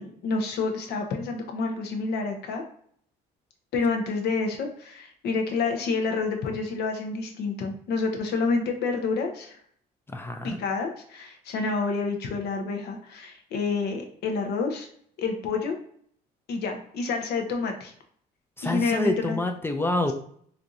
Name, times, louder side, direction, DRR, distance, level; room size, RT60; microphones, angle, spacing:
voice 1, 0.0-2.6 3.7-9.6 10.4-14.9 15.2-15.8 16.5-17.9 18.6-19.4, left 4 dB, 70° left, 3 dB, 0.8 m, -28 dB
voice 2, 10.1-10.6 18.6-20.1, left 2 dB, 15° left, 5 dB, 0.4 m, -27 dB
4.4 x 2.6 x 2.5 m, 0.63 s
cardioid pair, 110°, 17 cm